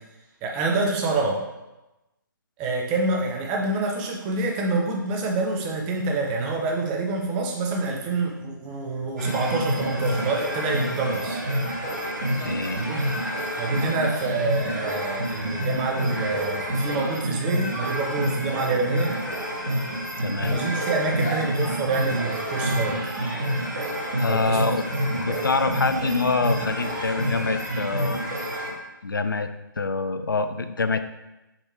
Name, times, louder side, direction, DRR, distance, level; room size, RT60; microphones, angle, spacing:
voice 1, 0.4-1.4 2.6-11.4 12.7-13.0 13.6-19.2 20.4-23.0 24.3-24.7 25.2-25.3, right 3 dB, 10° right, 1 dB, 0.4 m, -27 dB
sound 1, 9.2-28.7, equal, 50° right, 1.5 m, -28 dB
voice 2, 12.4-12.8 20.2-20.6 24.2-24.8 25.2-28.2 29.0-31.0, left 4 dB, 70° left, 10 dB, 0.4 m, -26 dB
5.8 x 3.0 x 3.1 m, 0.99 s
figure-of-eight pair, 140°, 11 cm